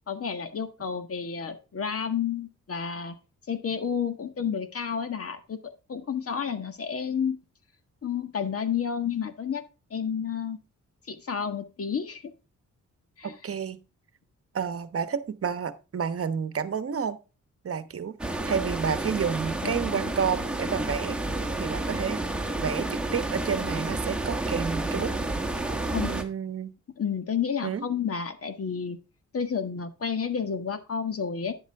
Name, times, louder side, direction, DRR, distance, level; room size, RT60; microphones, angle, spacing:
voice 1, 0.1-3.1 3.5-7.4 8.0-9.6 9.9-10.6 11.1-12.3 13.2-13.3 19.6-20.1 25.9-26.1 27.0-29.0 29.3-31.5, left 7 dB, 50° left, 9 dB, 1.6 m, -31 dB
voice 2, 13.2-13.8 14.5-17.2 17.6-22.2 22.6-25.1 26.0-26.7 27.6-27.8, right 7 dB, 50° right, 13 dB, 1.1 m, -30 dB
sound 1, 18.2-26.2, right 2 dB, 5° right, 1.6 m, -30 dB
10.5 x 7.3 x 3.5 m, 0.31 s
cardioid pair, 85°, 30 cm